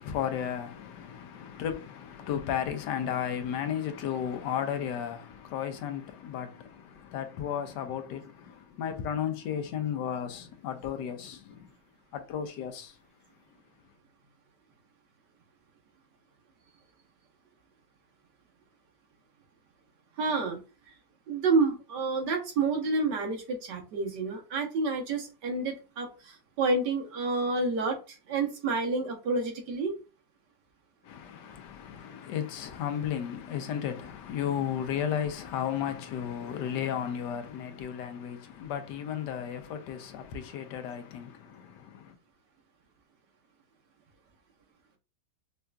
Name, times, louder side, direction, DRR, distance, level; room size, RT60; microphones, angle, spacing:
voice 1, 0.0-11.7 12.1-12.9 31.0-42.1, left 9 dB, 80° left, 1.3 m, -34 dB
voice 2, 20.2-20.6 21.3-29.9, right 3 dB, 75° right, 1.6 m, -29 dB
5.3 x 2.5 x 2.3 m
omnidirectional pair, 1.9 m